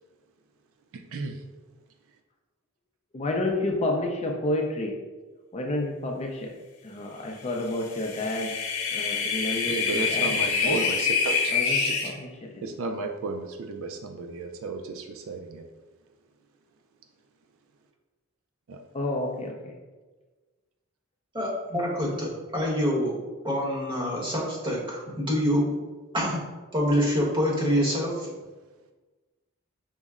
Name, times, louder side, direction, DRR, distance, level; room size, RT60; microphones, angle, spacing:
voice 1, 3.1-4.9 5.5-6.5 6.8-8.5 8.9-10.8 11.5-12.7 18.9-19.7, left 2 dB, 30° left, 1 dB, 0.4 m, -30 dB
sound 1, 7.8-12.1, left 5 dB, 85° left, 0.6 m, -26 dB
voice 2, 9.7-12.1 12.6-15.6 18.7-18.8, right 3 dB, 65° right, 5 dB, 0.4 m, -34 dB
voice 3, 21.3-23.2 23.4-25.8 26.1-26.5 26.7-28.3, equal, 25° right, -4 dB, 1.0 m, -26 dB
5.3 x 2.0 x 3.5 m, 1.3 s
head